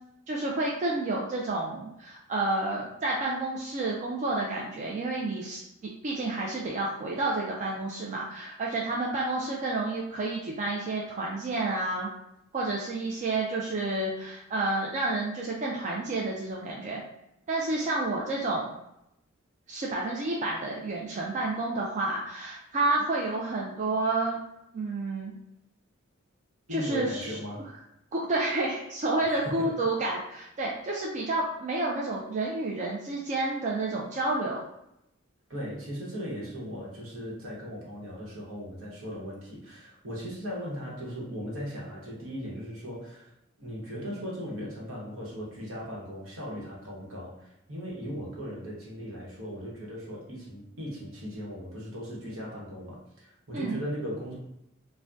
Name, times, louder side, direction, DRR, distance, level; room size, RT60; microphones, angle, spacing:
voice 1, 0.3-5.6 6.0-12.1 12.5-17.0 17.5-18.7 19.7-24.4 24.7-25.3 26.7-27.4 28.1-34.6 53.5-53.8, right 2 dB, 35° right, -3 dB, 0.3 m, -30 dB
voice 2, 26.7-27.6 29.3-29.8 35.5-43.3 43.6-54.4, equal, 70° right, -4 dB, 1.0 m, -38 dB
2.6 x 2.1 x 3.3 m, 0.83 s
head